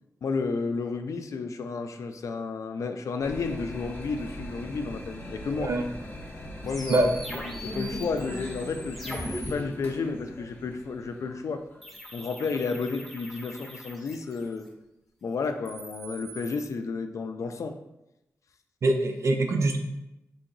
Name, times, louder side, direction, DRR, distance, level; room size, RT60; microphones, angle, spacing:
voice 1, 0.2-5.7 6.6-11.7 12.1-14.7 15.2-17.8, left 4 dB, 75° left, 7 dB, 0.4 m, -32 dB
sound 1, 3.2-11.8, left 1 dB, 40° left, 0.9 m, -40 dB
sound 2, 6.7-9.5 11.8-14.6 15.5-16.7, equal, ahead, 0.6 m, -40 dB
voice 2, 18.8-19.8, right 2 dB, 60° right, 5 dB, 0.5 m, -24 dB
3.4 x 2.8 x 3.9 m, 0.90 s
wide cardioid pair, 115°, 5 cm